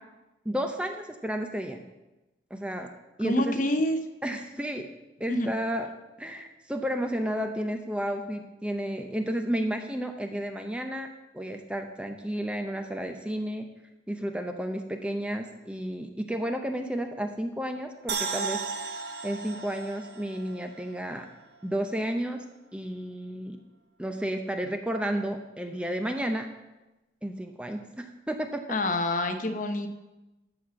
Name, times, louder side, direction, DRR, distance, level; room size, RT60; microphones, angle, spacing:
voice 1, 0.4-1.8 2.5-2.9 3.2-3.6 4.2-4.9 5.2-5.9 6.2-11.1 11.3-13.7 14.1-18.6 19.2-21.3 21.6-22.4 22.7-23.6 24.0-26.5 27.2-28.6, equal, 5° right, 5 dB, 0.6 m, -32 dB
voice 2, 3.2-4.0 5.3-5.5 28.7-29.9, left 1 dB, 45° left, 7 dB, 0.8 m, -26 dB
sound 1, 18.1-21.3 21.6-21.7, right 5 dB, 65° right, 0.9 m, -35 dB
12.5 x 4.2 x 7.4 m, 1.0 s
head